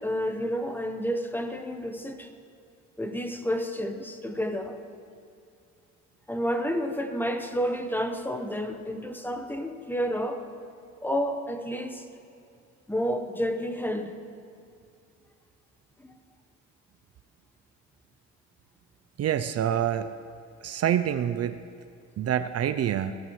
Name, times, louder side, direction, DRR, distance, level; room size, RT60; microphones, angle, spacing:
voice 1, 0.0-2.3 3.0-4.8 6.3-10.4 11.0-12.0 12.9-14.1, equal, 5° left, 6 dB, 1.0 m, -30 dB
voice 2, 19.2-20.1 20.6-21.6 22.2-23.2, right 10 dB, 55° right, 11 dB, 0.5 m, -26 dB
20.5 x 14.0 x 3.2 m, 2.4 s
cardioid pair, 90°, 30 cm